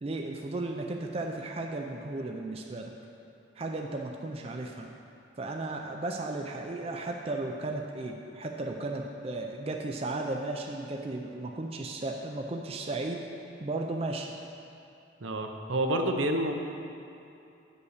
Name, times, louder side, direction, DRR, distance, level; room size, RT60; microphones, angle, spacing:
voice 1, 0.0-2.9 3.6-4.9 5.4-13.2 13.6-14.3, right 2 dB, 30° right, 2 dB, 0.4 m, -35 dB
voice 2, 15.2-16.5, right 1 dB, 75° right, 4 dB, 0.7 m, -28 dB
8.4 x 5.4 x 6.5 m, 2.7 s
head